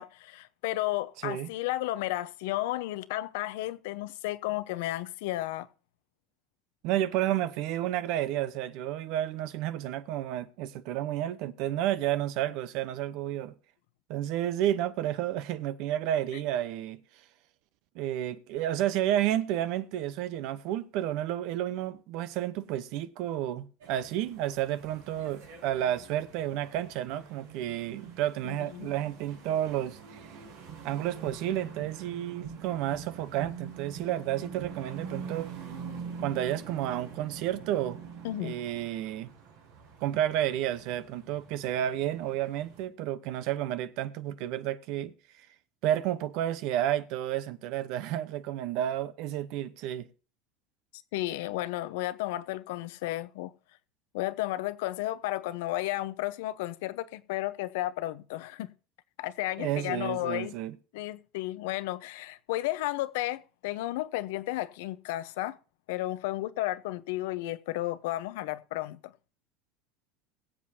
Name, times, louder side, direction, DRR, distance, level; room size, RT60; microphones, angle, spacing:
voice 1, 0.0-5.7 28.4-28.9 38.2-38.5 51.1-53.5 54.1-58.7 59.2-60.5 60.9-65.6 65.9-69.1, left 16 dB, 80° left, 0.8 m, -33 dB
voice 2, 6.8-13.5 14.1-17.0 17.9-30.0 30.8-35.5 36.2-38.0 38.4-39.3 40.0-45.1 45.8-50.1 59.6-60.8, right 12 dB, 65° right, 0.8 m, -31 dB
sound 1, 23.8-42.8, right 6 dB, 90° right, 4.5 m, -45 dB
21.5 x 7.6 x 2.8 m
supercardioid pair, 115°, 0 cm